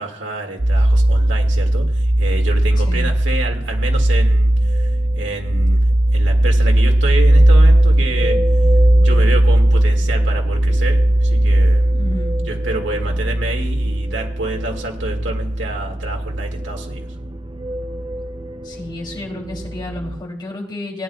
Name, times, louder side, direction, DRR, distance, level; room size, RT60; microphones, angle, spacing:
voice 1, 0.0-4.9 5.1-5.8 6.1-8.4 9.0-11.9 12.5-17.1, right 2 dB, 85° right, 1 dB, 2.1 m, -28 dB
sound 1, 0.6-20.2, right 1 dB, 25° right, 0.5 m, -17 dB
voice 2, 11.9-12.5 18.6-21.0, left 2 dB, 25° left, -1 dB, 2.9 m, -31 dB
19.0 x 10.0 x 2.3 m, 0.70 s
head